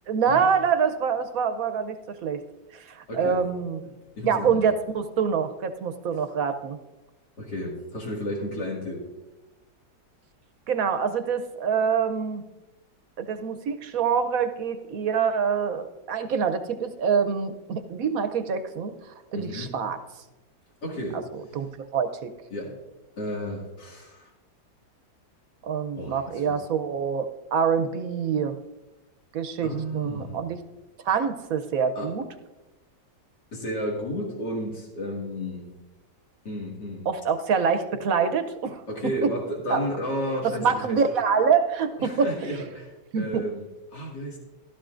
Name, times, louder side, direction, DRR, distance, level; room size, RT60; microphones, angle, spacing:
voice 1, 0.1-2.4 2.8-3.8 4.2-6.8 10.7-12.4 13.2-18.9 19.3-20.0 21.1-21.2 21.5-21.7 21.9-22.3 25.6-28.5 29.3-30.6 31.0-32.2 37.1-38.8 39.2-39.3 39.7-39.8 40.6-42.3 43.1-43.4, right 6 dB, 65° right, 9 dB, 1.0 m, -25 dB
voice 2, 3.1-3.4 4.2-4.6 7.4-9.1 19.3-19.7 20.8-21.6 22.5-22.8 23.2-24.3 25.9-26.6 29.6-30.4 32.0-32.1 33.5-35.7 36.4-37.1 38.9-41.0 42.0-44.4, equal, 70° left, -2 dB, 2.7 m, -33 dB
15.5 x 12.5 x 2.5 m, 1.1 s
omnidirectional pair, 1.9 m